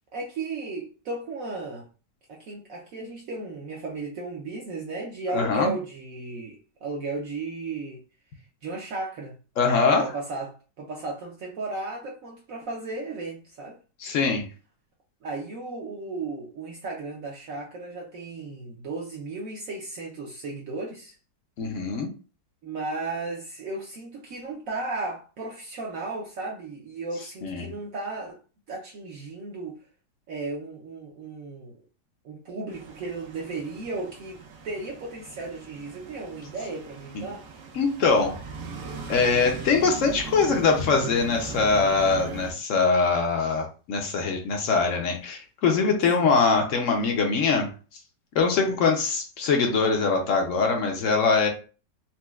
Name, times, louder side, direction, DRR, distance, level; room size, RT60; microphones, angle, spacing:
voice 1, 0.1-1.9 2.3-8.0 8.6-9.4 10.0-13.8 15.2-21.1 22.6-28.4 28.7-29.8 30.3-31.8 32.2-37.4 46.2-46.3 48.5-48.7, right 3 dB, 70° right, 0.8 m, -35 dB
voice 2, 5.3-5.7 9.6-10.0 14.0-14.4 21.6-22.1 27.4-27.7 37.7-38.4 39.1-47.7 48.3-51.5, left 4 dB, 65° left, 0.7 m, -23 dB
sound 1, 32.7-42.5, right 5 dB, 90° right, 1.4 m, -39 dB
4.2 x 2.2 x 2.2 m
omnidirectional pair, 1.9 m